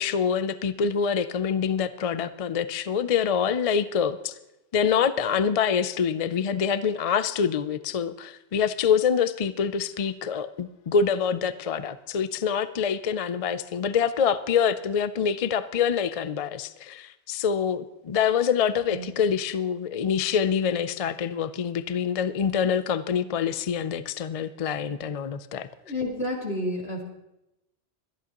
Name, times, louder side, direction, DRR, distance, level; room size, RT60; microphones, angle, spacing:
voice 1, 0.0-4.3 4.7-25.7, left 7 dB, 50° left, 13 dB, 0.4 m, -25 dB
voice 2, 25.9-27.0, left 1 dB, 70° left, -1 dB, 2.7 m, -30 dB
22.5 x 11.0 x 3.0 m, 0.90 s
omnidirectional pair, 1.1 m